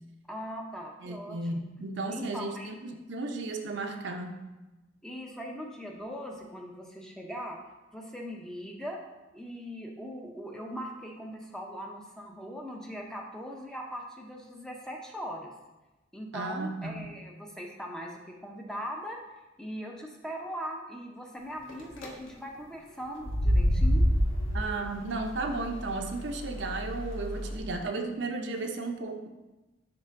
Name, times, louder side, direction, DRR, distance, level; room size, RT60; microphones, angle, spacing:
voice 1, 0.3-1.4 2.1-2.7 5.0-7.6 7.9-9.0 9.3-15.5 16.1-19.2 19.6-24.1, equal, 5° left, 0 dB, 0.5 m, -40 dB
voice 2, 1.0-4.4 16.3-17.1 24.5-29.3, right 3 dB, 65° right, 4 dB, 0.6 m, -34 dB
sound 1, 21.7-22.1 23.2-27.6, equal, 85° left, 1.0 m, -28 dB
10.5 x 3.6 x 2.5 m, 1.1 s
head